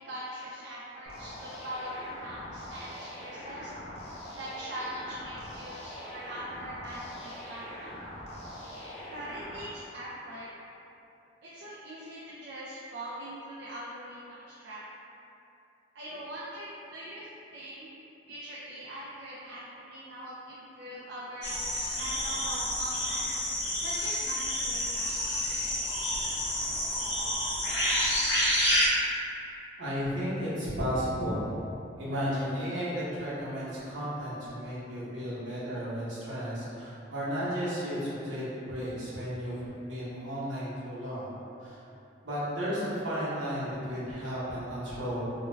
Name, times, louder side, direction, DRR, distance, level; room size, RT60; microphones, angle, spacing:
voice 1, 0.0-3.7 4.4-7.9 9.1-10.5 11.4-14.8 15.9-17.3 17.5-17.9 18.3-21.6 21.9-23.3 23.8-25.1, right 1 dB, 60° right, -8 dB, 0.3 m, -42 dB
sound 1, 1.1-9.6, left 1 dB, 35° left, 0.5 m, -43 dB
sound 2, 21.4-28.9, equal, 75° left, 0.6 m, -29 dB
voice 2, 29.8-31.5 32.0-41.3 41.6-41.8 42.2-45.2, equal, 75° right, -10 dB, 0.8 m, -33 dB
2.2 x 2.1 x 3.1 m, 2.8 s
head